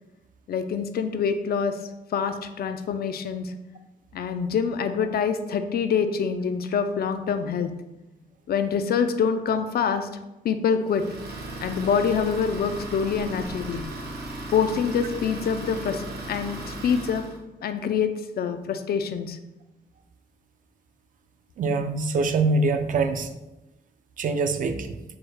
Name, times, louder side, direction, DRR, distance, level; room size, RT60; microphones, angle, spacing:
voice 1, 0.5-1.8 2.1-3.5 4.1-7.7 8.5-10.1 10.4-11.0 11.6-13.8 14.5-17.2 17.6-19.4, left 6 dB, 70° left, 9 dB, 0.4 m, -25 dB
Idling, 10.9-17.4, right 2 dB, 80° right, 0.8 m, -36 dB
voice 2, 21.6-23.3 24.2-25.0, right 3 dB, 55° right, 8 dB, 0.4 m, -24 dB
4.6 x 2.1 x 4.7 m, 0.97 s
wide cardioid pair, 135°, 17 cm